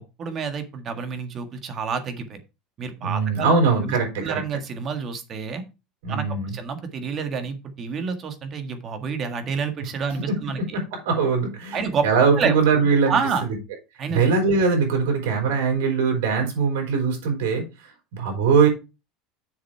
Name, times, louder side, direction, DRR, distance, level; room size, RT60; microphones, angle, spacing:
voice 1, 0.2-2.4 2.8-5.6 6.1-10.6 11.7-12.1 12.4-12.5 13.1-13.4 14.0-14.2, right 5 dB, 35° right, 7 dB, 1.8 m, -28 dB
voice 2, 3.0-4.4 6.0-6.5 10.3-10.4 10.7-13.2 13.5-13.6 14.1-17.6 18.1-18.7, right 5 dB, 85° right, 2 dB, 4.7 m, -21 dB
7.4 x 6.9 x 4.6 m, 0.28 s
supercardioid pair, 135°, 0 cm